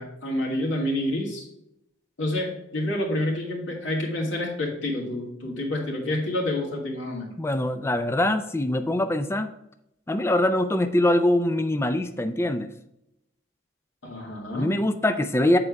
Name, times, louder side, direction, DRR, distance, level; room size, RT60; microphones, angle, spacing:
voice 1, 0.0-1.5 2.2-7.4 14.0-14.7, left 1 dB, 80° left, -3 dB, 2.0 m, -28 dB
voice 2, 7.4-9.5 10.1-12.7 14.5-15.6, left 1 dB, 15° left, 9 dB, 0.4 m, -23 dB
7.7 x 4.6 x 4.6 m, 0.82 s
head